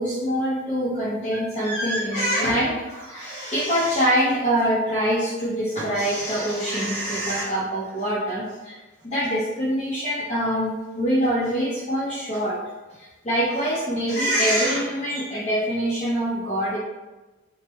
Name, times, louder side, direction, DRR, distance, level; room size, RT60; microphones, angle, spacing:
voice 1, 0.0-8.8 9.0-12.6 13.0-16.8, equal, 35° left, -10 dB, 0.7 m, -24 dB
3.1 x 2.1 x 3.0 m, 1.1 s
head